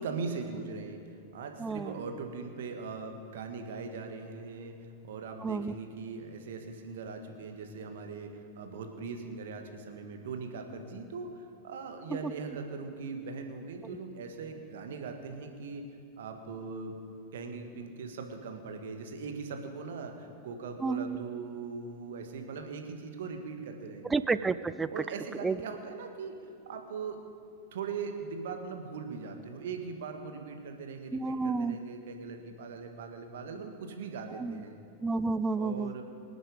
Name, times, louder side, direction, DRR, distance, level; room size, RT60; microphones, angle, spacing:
voice 1, 0.0-15.9 16.2-17.0 17.3-24.3 24.9-26.3 26.7-27.2 27.7-34.8 35.5-36.0, right 4 dB, 60° right, 5 dB, 1.7 m, -40 dB
voice 2, 20.8-21.1 24.1-24.9 25.4-25.5 31.1-31.7 34.4-34.5 35.0-35.9, right 4 dB, 10° right, 14 dB, 0.5 m, -30 dB
24.5 x 8.8 x 5.3 m, 2.3 s
figure-of-eight pair, 90°, 0 cm